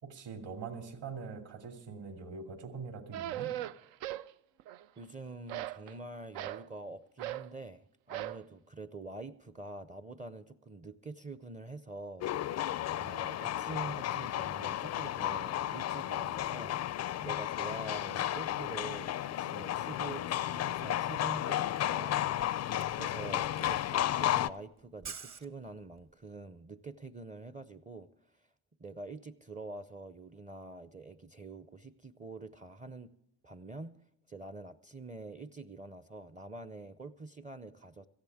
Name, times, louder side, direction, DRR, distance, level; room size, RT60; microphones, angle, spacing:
voice 1, 0.0-3.5, right 5 dB, 65° right, 4 dB, 2.7 m, -43 dB
sound 1, 3.1-4.3 4.6-5.1 5.5-6.7 7.2-7.5 8.1-8.4, right 13 dB, 80° right, 0.6 m, -39 dB
voice 2, 5.0-12.3 12.5-16.8 17.2-28.1 28.8-33.1 33.4-33.9 34.3-38.1, right 2 dB, 15° right, 13 dB, 0.5 m, -46 dB
sound 2, 12.2-24.5, left 12 dB, 40° left, 0.4 m, -33 dB
Camera, 21.6-26.1, right 6 dB, 40° right, 1.0 m, -50 dB
17.5 x 14.0 x 3.5 m, 0.78 s
supercardioid pair, 80°, 45 cm